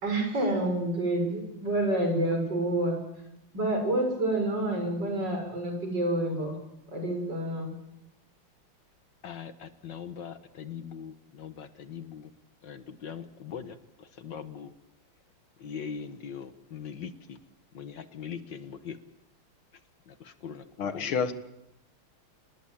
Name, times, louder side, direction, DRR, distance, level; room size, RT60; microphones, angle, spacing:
voice 1, 0.0-3.0 3.5-6.6 6.9-7.7, right 1 dB, 55° right, 3 dB, 7.1 m, -28 dB
voice 2, 9.2-12.3 12.6-14.7 15.6-17.4 17.7-19.0 20.1-20.7 20.9-21.2, left 7 dB, 65° left, 10 dB, 1.8 m, -41 dB
voice 3, 20.8-21.3, left 6 dB, 80° left, 10 dB, 2.3 m, -28 dB
27.5 x 20.5 x 7.4 m, 0.84 s
omnidirectional pair, 2.3 m